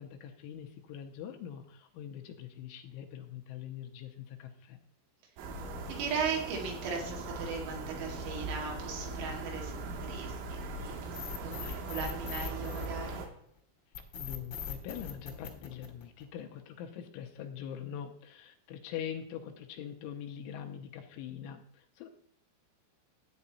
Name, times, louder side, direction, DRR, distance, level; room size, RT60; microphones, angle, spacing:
voice 1, 0.0-4.8 14.1-22.1, left 9 dB, 80° left, 5 dB, 3.1 m, -43 dB
sound 1, 5.4-13.3, right 2 dB, 70° right, 3.5 m, -40 dB
voice 2, 5.9-13.3, right 5 dB, 90° right, 0 dB, 5.1 m, -38 dB
sound 2, 11.1-13.4 13.9-16.4, left 7 dB, 45° left, 1.5 m, -41 dB
13.0 x 8.6 x 4.2 m, 0.63 s
omnidirectional pair, 5.9 m